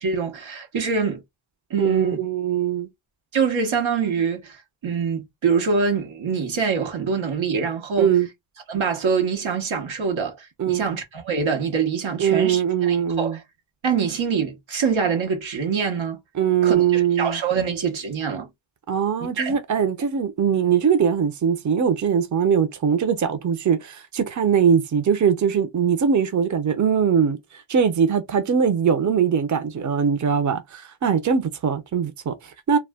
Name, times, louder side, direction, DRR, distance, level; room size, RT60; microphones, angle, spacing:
voice 1, 0.0-1.2 1.7-2.2 3.3-8.1 8.7-13.4 13.8-16.2 16.6-18.5 19.4-19.6, right 5 dB, 85° right, 0.9 m, -24 dB
voice 2, 1.8-2.9 8.0-8.3 10.6-10.8 12.2-13.4 16.4-17.4 18.9-27.4 27.7-32.8, right 7 dB, 40° right, 0.6 m, -21 dB
2.3 x 2.1 x 3.4 m
cardioid pair, 50°, 46 cm